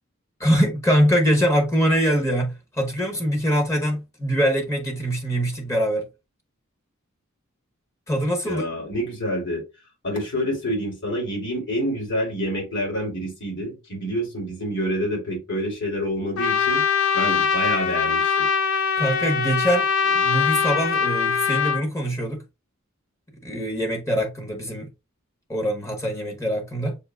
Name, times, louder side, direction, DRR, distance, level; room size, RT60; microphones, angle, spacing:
voice 1, 0.4-6.0 8.1-8.6 19.0-22.4 23.4-24.9 25.5-27.0, equal, 15° left, 0.9 m, -23 dB
voice 2, 8.4-9.6 10.0-16.8 17.1-18.5, equal, 60° left, 2.4 m, -27 dB
Trumpet, 16.4-21.8, left 6 dB, 85° left, 0.5 m, -22 dB
6.8 x 2.7 x 2.3 m
head